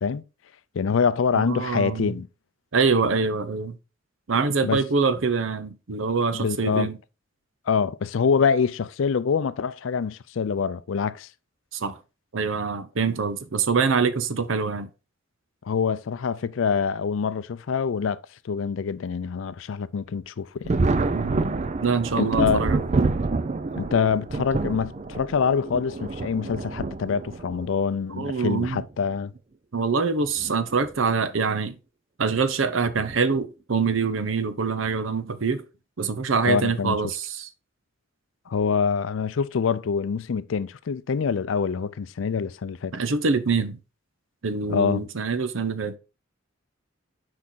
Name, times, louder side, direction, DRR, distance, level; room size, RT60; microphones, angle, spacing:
voice 1, 0.7-2.3 4.6-4.8 6.3-6.9 7.7-11.3 15.6-20.9 22.2-22.7 23.8-29.3 36.4-37.0 38.5-42.9 44.7-45.0, left 6 dB, 70° left, 0.4 m, -25 dB
voice 2, 1.3-2.1 2.7-3.8 4.3-7.0 11.7-12.0 12.3-14.9 21.1-21.5 21.8-22.8 28.1-28.8 29.7-31.7 32.2-35.6 36.0-37.5 42.9-43.8 44.4-46.0, right 5 dB, 70° right, 0.7 m, -25 dB
Thunder, 20.6-27.7 28.7-28.8 30.3-30.5 30.9-31.0 32.9-33.2 33.9-34.2, right 3 dB, 35° right, 0.5 m, -27 dB
6.1 x 4.8 x 4.0 m
head